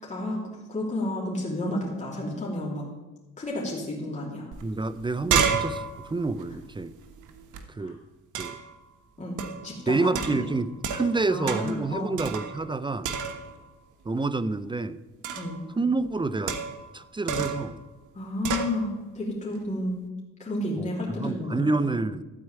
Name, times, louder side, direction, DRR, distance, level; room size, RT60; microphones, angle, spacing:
voice 1, 0.0-0.4 0.7-2.8 3.4-4.5 7.8-7.9 9.2-9.9 10.3-10.5 11.3-12.3 15.4-15.7 18.1-20.0 20.4-21.9, left 1 dB, 25° left, -4 dB, 2.8 m, -31 dB
sound 1, 4.5-4.6 4.9-7.6 8.3-8.7 9.4-9.7 10.1-11.2 11.5-11.8 12.2-12.8 13.0-13.6 15.2-15.6 16.5-16.9 17.3-17.7 18.4-18.7, right 6 dB, 85° right, 1.3 m, -30 dB
voice 2, 4.6-6.9 7.7-8.0 8.4-8.6 9.9-13.1 14.0-15.0 15.8-16.6 16.9-17.8 20.8-22.2, right 3 dB, 15° right, 15 dB, 0.5 m, -28 dB
13.0 x 4.6 x 8.6 m, 1.2 s
cardioid pair, 90°, 30 cm